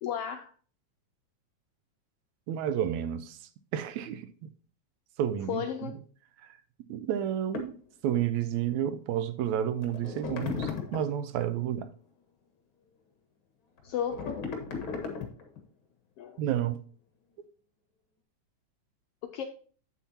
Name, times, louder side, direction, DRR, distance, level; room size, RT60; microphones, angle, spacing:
voice 1, 0.0-0.5 5.5-5.9 13.8-14.5 16.2-16.4 19.2-19.4, left 8 dB, 80° left, 1.4 m, -34 dB
voice 2, 2.5-3.4 3.7-4.5 5.2-5.6 6.9-7.7 8.0-11.9 16.4-16.8, right 10 dB, 80° right, 1.9 m, -30 dB
sound 1, 7.5-7.8 9.4-9.5 9.8-11.2 13.8-15.6, left 5 dB, 50° left, 2.1 m, -36 dB
8.3 x 8.3 x 2.8 m
omnidirectional pair, 3.4 m